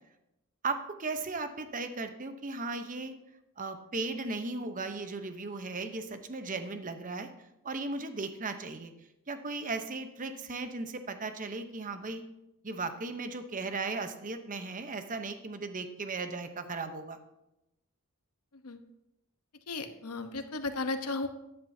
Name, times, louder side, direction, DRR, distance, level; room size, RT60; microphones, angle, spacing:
voice 1, 0.6-3.1 3.6-7.3 7.6-8.9 9.3-12.2 12.6-17.2, right 3 dB, 35° right, 8 dB, 0.8 m, -36 dB
voice 2, 19.7-21.3, left 3 dB, 85° left, 8 dB, 1.0 m, -34 dB
13.5 x 10.5 x 2.8 m, 0.88 s
head